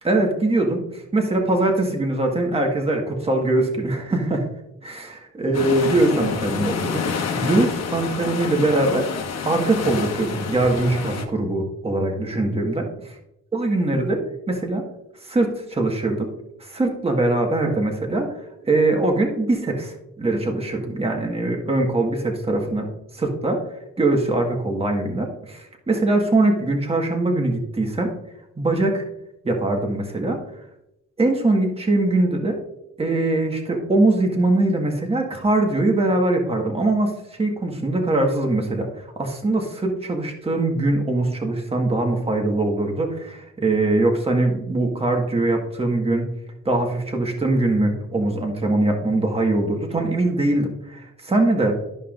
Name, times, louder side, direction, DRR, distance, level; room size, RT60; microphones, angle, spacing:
voice 1, 0.0-4.5 4.8-9.1 9.4-13.1 13.5-14.8 15.2-16.3 16.6-18.3 18.6-22.9 23.1-23.6 24.0-28.1 28.6-29.0 29.4-30.4 31.2-32.6 33.0-46.3 46.6-51.7, right 2 dB, 20° right, 2 dB, 1.7 m, -22 dB
sound 1, 5.5-11.3, left 6 dB, 60° left, 1.2 m, -28 dB
12.5 x 5.5 x 2.6 m, 0.85 s
cardioid pair, 90°, 30 cm